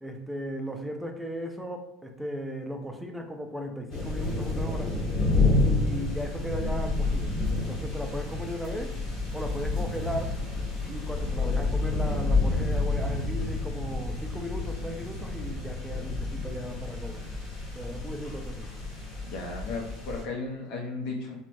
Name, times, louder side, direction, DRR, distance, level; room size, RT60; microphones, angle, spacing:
voice 1, 0.0-4.9 5.6-8.9 9.3-10.4 10.9-17.2 17.7-18.7, equal, 5° right, 4 dB, 0.4 m, -36 dB
sound 1, 3.9-20.2, left 3 dB, 35° left, 1.4 m, -29 dB
voice 2, 19.2-21.4, left 3 dB, 65° left, -1 dB, 0.6 m, -35 dB
3.0 x 2.2 x 2.5 m, 0.89 s
supercardioid pair, 120°, 0 cm